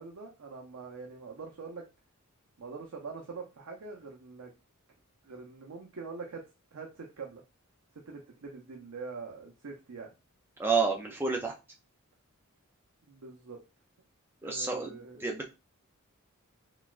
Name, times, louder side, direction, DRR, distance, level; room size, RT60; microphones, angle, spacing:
voice 1, 0.0-1.8 2.6-4.5 5.2-6.4 6.7-7.4 8.1-10.1 13.1-13.6 14.4-15.3, right 4 dB, 90° right, 2 dB, 0.6 m, -44 dB
voice 2, 10.6-11.5 14.4-15.5, right 4 dB, 10° right, 0 dB, 0.4 m, -30 dB
3.9 x 2.3 x 2.4 m, 0.28 s
head